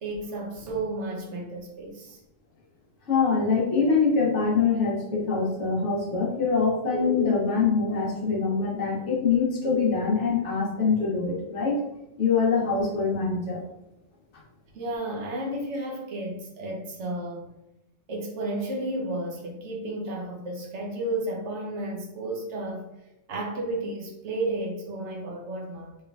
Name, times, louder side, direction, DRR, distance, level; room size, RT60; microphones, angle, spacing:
voice 1, 0.0-2.2 14.7-17.5 18.1-22.9 23.3-26.0, right 1 dB, 65° right, -1 dB, 1.0 m, -32 dB
voice 2, 3.1-11.8 12.2-13.6, left 5 dB, 65° left, -3 dB, 1.1 m, -24 dB
3.5 x 3.2 x 2.3 m, 0.90 s
omnidirectional pair, 1.3 m